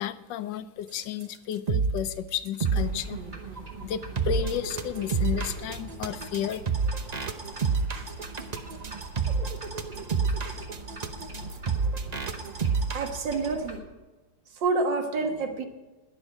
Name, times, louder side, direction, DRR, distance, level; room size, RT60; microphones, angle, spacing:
voice 1, 0.0-3.2 3.8-6.6, left 10 dB, 80° left, 13 dB, 1.4 m, -32 dB
sound 1, 1.2-1.3 1.5-2.1 2.5-13.1, right 5 dB, 45° right, 0.5 m, -29 dB
sound 2, 2.6-13.8, right 3 dB, 25° right, 2.2 m, -43 dB
voice 2, 12.9-13.8 14.6-15.7, right 3 dB, 80° right, 6 dB, 2.1 m, -28 dB
21.0 x 7.3 x 5.0 m, 1.2 s
omnidirectional pair, 1.9 m